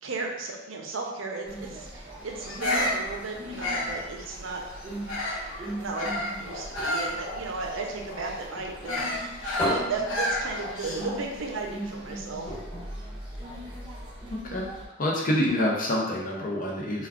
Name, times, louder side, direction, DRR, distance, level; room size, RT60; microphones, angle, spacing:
voice 1, 0.0-4.6 5.8-12.5, right 3 dB, 80° right, 0 dB, 0.5 m, -35 dB
sound 1, 1.4-14.8, right 1 dB, 25° right, 0.5 m, -40 dB
Bird vocalization bird call bird song, 2.4-5.5 5.9-11.2, left 1 dB, 85° left, 0.8 m, -31 dB
sound 2, 5.8-8.5 8.9-11.1 11.4-11.6 11.8-12.0 12.4-13.9 14.6-14.7, left 1 dB, 25° left, 1.5 m, -36 dB
voice 2, 14.3-14.6 15.0-17.1, left 1 dB, 45° left, -3 dB, 0.5 m, -27 dB
2.3 x 2.2 x 3.4 m, 1.0 s
head